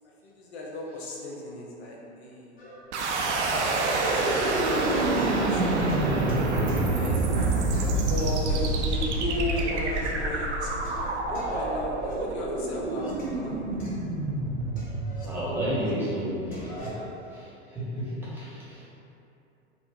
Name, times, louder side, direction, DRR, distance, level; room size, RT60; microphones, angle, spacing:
voice 1, 0.0-2.6 4.0-6.3 6.9-7.3 8.1-13.8 16.5-16.6, left 1 dB, 65° left, -3 dB, 0.6 m, -36 dB
sound 1, 2.6-3.5 4.1-7.3 7.7-8.6 8.9-9.0 9.4-10.3 10.8-13.5 13.8-15.9 16.2-17.1, equal, 25° left, 0.8 m, -44 dB
sound 2, 2.9-15.9, right 2 dB, 75° right, 0.5 m, -27 dB
sound 3, 5.6-11.2, right 1 dB, 25° right, 0.7 m, -45 dB
voice 2, 15.2-17.0 17.3-18.9, equal, 5° right, -10 dB, 1.0 m, -32 dB
4.2 x 2.0 x 2.6 m, 2.7 s
hypercardioid pair, 90°, 34 cm